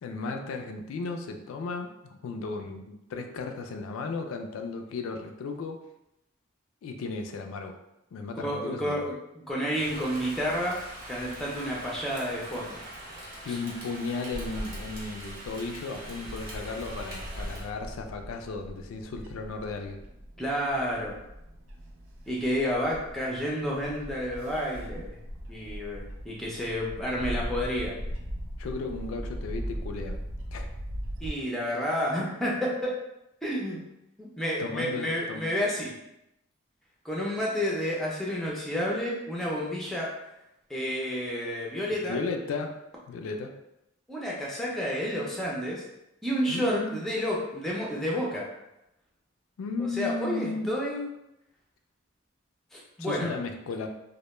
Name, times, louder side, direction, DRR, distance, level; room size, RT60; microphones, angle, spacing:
voice 1, 0.0-5.8 6.8-7.8 8.1-9.1 13.4-20.0 28.6-30.2 30.5-30.7 34.6-35.5 42.1-42.8 43.1-43.5 46.5-47.0 49.6-50.7 53.0-53.9, left 3 dB, 80° left, 5 dB, 0.3 m, -35 dB
voice 2, 8.4-10.8 11.1-12.8 13.5-13.6 20.4-21.2 22.3-25.2 25.5-27.9 31.2-33.0 33.4-33.8 34.2-35.9 37.0-40.1 40.7-42.2 44.1-45.8 46.2-48.5 49.8-51.1 52.7-53.3, equal, ahead, -4 dB, 0.4 m, -30 dB
Rain, 9.7-17.7, right 1 dB, 45° right, 0.7 m, -43 dB
Bird / Wind, 14.3-31.3, equal, 80° right, 0.4 m, -39 dB
2.1 x 2.1 x 3.0 m, 0.86 s
head